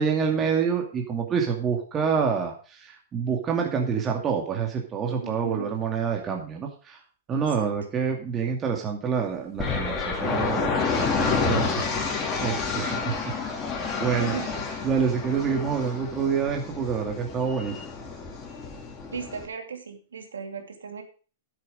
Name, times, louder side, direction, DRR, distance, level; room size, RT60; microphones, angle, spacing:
voice 1, 0.0-7.0 7.3-11.8 12.2-13.1 14.0-14.3 14.8-17.9, right 6 dB, 25° right, 1 dB, 2.4 m, -27 dB
voice 2, 5.2-5.7 7.3-7.7 14.2-14.5 19.1-21.0, right 6 dB, 85° right, 5 dB, 2.7 m, -36 dB
sound 1, 9.6-19.5, left 5 dB, 25° left, 3.1 m, -29 dB
12.5 x 7.6 x 5.2 m, 0.38 s
hypercardioid pair, 115°, 0 cm